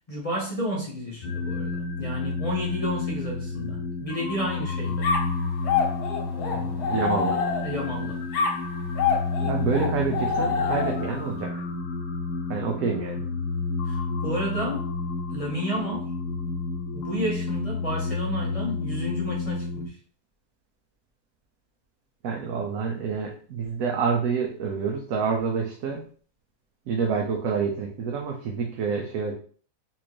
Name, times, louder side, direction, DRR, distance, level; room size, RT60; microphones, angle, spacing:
voice 1, 0.1-5.1 6.3-6.9 7.6-8.2 13.8-14.9 15.3-16.1 16.9-20.0, equal, 35° left, -2 dB, 0.6 m, -31 dB
sound 1, 1.2-19.9, left 3 dB, 65° left, 0.9 m, -30 dB
ghost voice reduced, 5.0-7.9 8.3-11.2, left 5 dB, 85° left, 1.8 m, -27 dB
voice 2, 6.9-7.4 9.4-11.6 12.5-13.3 22.2-26.0 26.9-29.3, right 5 dB, 70° right, 0 dB, 1.0 m, -27 dB
4.2 x 2.6 x 3.0 m, 0.43 s
omnidirectional pair, 1.6 m